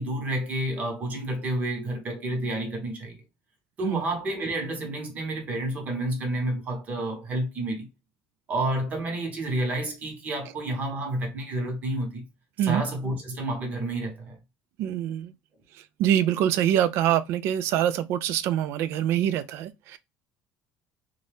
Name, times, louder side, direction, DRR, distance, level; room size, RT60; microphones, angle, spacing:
voice 1, 0.0-3.1 3.8-7.9 8.5-12.3 12.6-14.4, right 1 dB, 35° right, 1.0 m, -30 dB
voice 2, 14.8-15.3 16.0-20.0, right 11 dB, 65° right, 0.3 m, -24 dB
2.6 x 2.3 x 3.3 m
cardioid pair, 140°, 5 cm